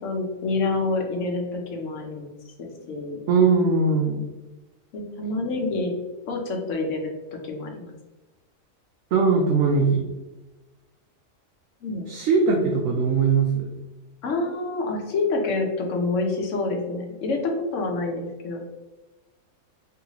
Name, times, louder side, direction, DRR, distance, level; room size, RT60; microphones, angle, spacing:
voice 1, 0.0-2.3 2.6-3.2 4.9-5.9 6.3-7.1 7.4-7.9 11.8-12.1 12.5-12.6 14.2-18.6, left 3 dB, 70° left, 1 dB, 1.1 m, -27 dB
voice 2, 3.3-4.2 9.1-10.0 12.1-13.7, right 4 dB, 70° right, 0 dB, 0.9 m, -20 dB
4.1 x 3.2 x 2.9 m, 1.1 s
omnidirectional pair, 1.4 m